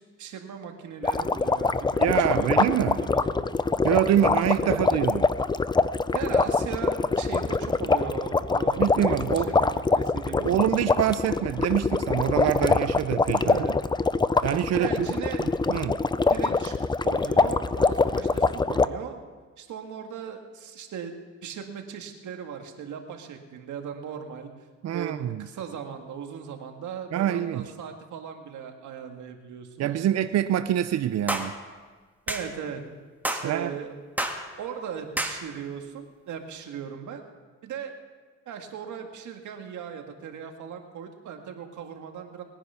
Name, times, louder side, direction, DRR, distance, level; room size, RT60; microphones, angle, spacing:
voice 1, 0.2-2.6 2.8-3.5 4.6-4.8 6.1-10.6 13.4-13.7 14.8-15.5 16.3-19.2 19.6-21.1 21.4-24.5 24.9-30.1 32.3-32.8 33.3-33.9 34.6-37.2 37.6-38.0 38.5-42.4, right 7 dB, 75° right, 4 dB, 1.9 m, -38 dB
sound 1, 1.0-18.9, left 3 dB, 15° left, 0.5 m, -24 dB
voice 2, 2.0-3.0 3.8-5.2 8.8-9.5 10.4-13.7 14.4-15.1 15.4-16.0 24.8-25.4 27.1-27.7 29.8-31.5 33.4-33.7, right 11 dB, 60° right, 11 dB, 0.6 m, -25 dB
sound 2, 31.3-31.5 32.3-32.5 33.2-33.5 34.2-34.4 35.2-35.4, right 1 dB, 5° right, 1.6 m, -28 dB
20.5 x 10.0 x 5.7 m, 1.5 s
cardioid pair, 90°, 30 cm